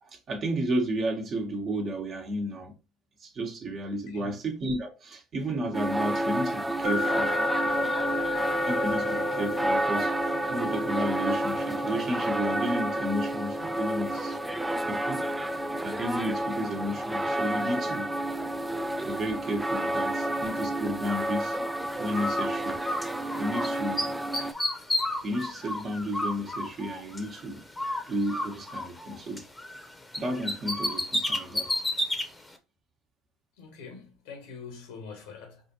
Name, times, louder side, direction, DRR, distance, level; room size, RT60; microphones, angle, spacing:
voice 1, 0.0-2.7 3.2-7.3 8.7-10.1 10.5-14.4 14.8-15.2 15.8-18.1 19.0-21.6 22.0-22.8 23.3-24.1 25.2-27.7 28.1-29.5 30.2-31.8, equal, 45° right, 1.2 m, -32 dB
sound 1, 5.7-24.5, right 1 dB, 10° right, 0.3 m, -30 dB
sound 2, 6.8-19.7, left 2 dB, 75° right, 1.0 m, -35 dB
Bird, 22.1-23.7 24.0-27.4 27.8-29.9 30.1-32.3, left 1 dB, 10° left, 0.9 m, -31 dB
voice 2, 33.6-35.6, left 5 dB, 80° left, 1.2 m, -44 dB
4.8 x 2.5 x 2.8 m
hypercardioid pair, 75°, 0 cm